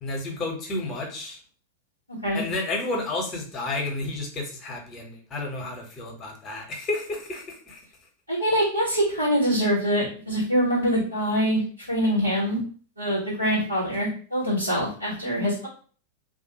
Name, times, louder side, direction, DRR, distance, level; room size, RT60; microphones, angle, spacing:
voice 1, 0.0-1.4 2.3-7.8, left 2 dB, 25° left, 1 dB, 0.9 m, -31 dB
voice 2, 8.3-12.6 13.0-15.7, equal, 90° right, -10 dB, 1.1 m, -24 dB
2.4 x 2.3 x 2.9 m, 0.42 s
figure-of-eight pair, 90°, 0 cm